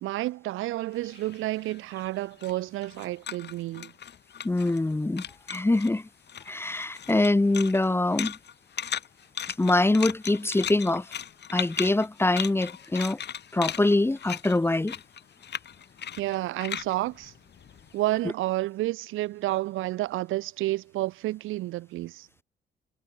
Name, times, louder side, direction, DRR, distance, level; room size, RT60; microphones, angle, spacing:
voice 1, 0.0-3.9 16.2-17.3 17.9-22.3, right 17 dB, 90° right, 1.2 m, -30 dB
sound 1, 1.0-4.9 5.2-5.9 6.3-18.1, left 8 dB, 60° left, 6.9 m, -37 dB
voice 2, 4.4-6.1 6.5-8.4 9.6-11.1 11.5-13.2 13.5-15.0, left 2 dB, 10° left, 0.8 m, -24 dB
cardioid pair, 90°, 20 cm